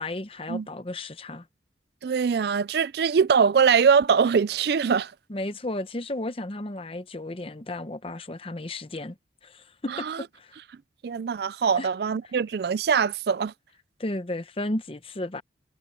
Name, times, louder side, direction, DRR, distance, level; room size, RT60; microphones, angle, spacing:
voice 1, 0.0-1.5 5.3-9.2 9.4-10.5 11.8-11.9 14.0-15.4, left 1 dB, 30° left, 0.9 m, -33 dB
voice 2, 2.0-5.1 9.9-10.2 11.0-13.5, right 6 dB, 60° right, 0.4 m, -22 dB
head